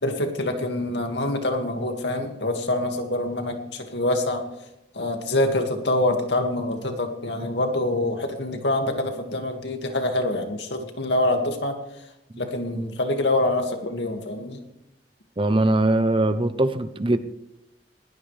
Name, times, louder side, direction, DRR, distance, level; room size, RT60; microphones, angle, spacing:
voice 1, 0.0-4.4 4.9-11.8 12.4-14.6, left 1 dB, 75° left, 4 dB, 2.3 m, -25 dB
voice 2, 15.4-17.2, right 2 dB, 30° right, 11 dB, 0.8 m, -21 dB
20.5 x 18.0 x 3.5 m, 0.90 s
head